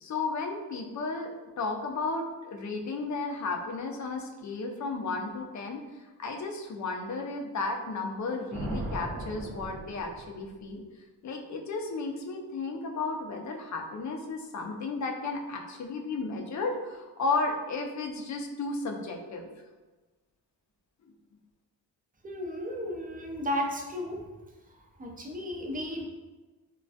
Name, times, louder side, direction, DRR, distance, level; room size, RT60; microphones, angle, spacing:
voice 1, 0.0-5.8 6.2-10.8 11.2-19.5, left 3 dB, 45° left, 3 dB, 0.4 m, -33 dB
Thunder, 8.5-10.7, right 1 dB, 50° right, 0.7 m, -37 dB
voice 2, 22.2-24.2 25.0-26.0, left 1 dB, 20° right, 0 dB, 0.4 m, -34 dB
2.3 x 2.1 x 2.6 m, 1.2 s
cardioid pair, 85°, 40 cm